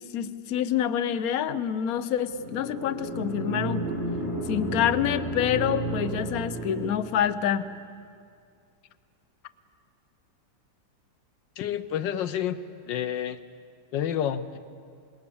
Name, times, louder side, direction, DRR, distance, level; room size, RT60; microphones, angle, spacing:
voice 1, 0.1-3.8 4.5-7.7, left 9 dB, 60° left, 11 dB, 1.2 m, -27 dB
sound 1, 2.3-7.2, right 1 dB, 35° left, 3.1 m, -32 dB
voice 2, 11.6-12.6 12.9-13.4 13.9-14.6, left 10 dB, 85° left, 12 dB, 1.5 m, -29 dB
26.5 x 21.0 x 7.1 m, 2.3 s
omnidirectional pair, 1.9 m